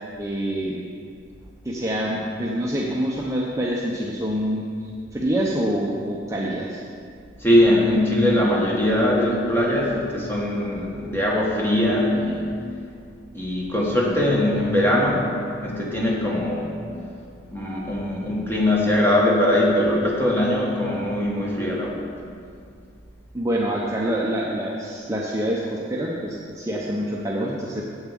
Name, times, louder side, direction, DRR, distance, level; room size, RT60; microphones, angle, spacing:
voice 1, 0.2-0.8 1.6-6.8 23.3-27.8, equal, 15° right, -3 dB, 0.7 m, -26 dB
voice 2, 7.4-12.5 13.3-15.3 15.6-16.8 17.5-22.0, left 1 dB, 10° left, -3 dB, 1.5 m, -21 dB
8.0 x 7.4 x 7.5 m, 2.3 s
head